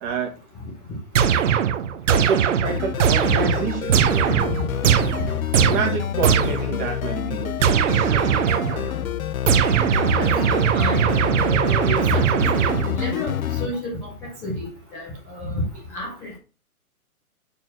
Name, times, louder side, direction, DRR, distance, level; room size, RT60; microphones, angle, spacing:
voice 1, 0.0-0.3 2.1-4.4 5.6-8.9, right 6 dB, 20° right, 1 dB, 1.8 m, -29 dB
sound 1, 1.1-6.8 7.6-8.9 9.5-13.1, right 8 dB, 55° right, 0.9 m, -20 dB
sound 2, 2.6-13.7, left 10 dB, 65° left, 0.7 m, -28 dB
voice 2, 10.1-11.1 11.4-12.4 13.0-13.3 13.6-14.1 14.4-14.7 14.9-15.6 15.9-16.4, left 1 dB, 5° left, -6 dB, 0.6 m, -30 dB
6.4 x 4.3 x 6.2 m, 0.34 s
hypercardioid pair, 155°, 45 cm